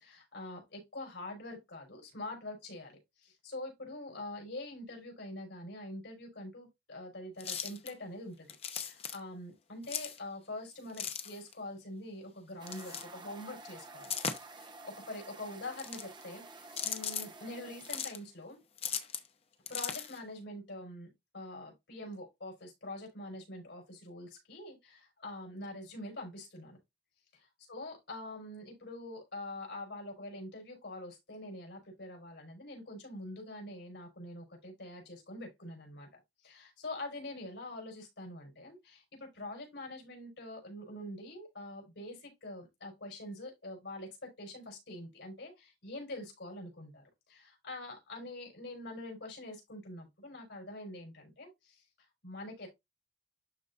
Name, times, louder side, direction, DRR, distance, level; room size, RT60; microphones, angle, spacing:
voice 1, 0.0-8.5 8.8-14.2 14.5-18.6 19.7-26.8 27.3-51.8 52.2-52.7, left 1 dB, 90° left, 4.6 m, -45 dB
sound 1, 7.4-7.9 8.5-9.2 9.8-10.2 10.9-11.5 12.7-13.0 14.0-14.6 15.6-16.2 16.7-17.3 17.8-18.2 18.8-19.3 19.7-20.2, left 7 dB, 35° left, 0.8 m, -38 dB
sound 2, 12.6-18.1, right 3 dB, 25° right, 0.9 m, -51 dB
12.0 x 4.0 x 2.5 m
head